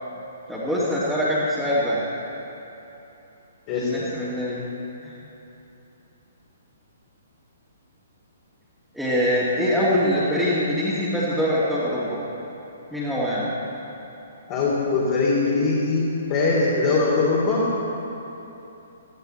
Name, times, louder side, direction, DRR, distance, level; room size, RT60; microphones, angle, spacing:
voice 1, 0.5-2.0 3.8-4.7 5.0-5.1 8.9-12.2 12.9-13.5, equal, ahead, -12 dB, 2.7 m, -23 dB
voice 2, 3.7-4.0 14.5-17.7, left 3 dB, 30° left, -6 dB, 3.2 m, -22 dB
19.5 x 14.5 x 4.6 m, 3.0 s
figure-of-eight pair, 125°, 0 cm